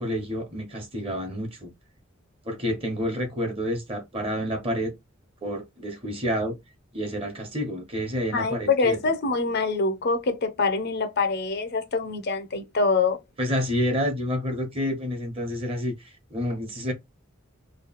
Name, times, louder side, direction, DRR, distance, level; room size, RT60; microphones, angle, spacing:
voice 1, 0.0-1.7 2.4-4.9 5.4-6.5 6.9-9.0 13.4-15.9 16.3-16.9, equal, 30° right, 1.2 m, -29 dB
voice 2, 8.3-13.2, left 4 dB, 55° left, 0.7 m, -25 dB
3.2 x 2.2 x 4.0 m
head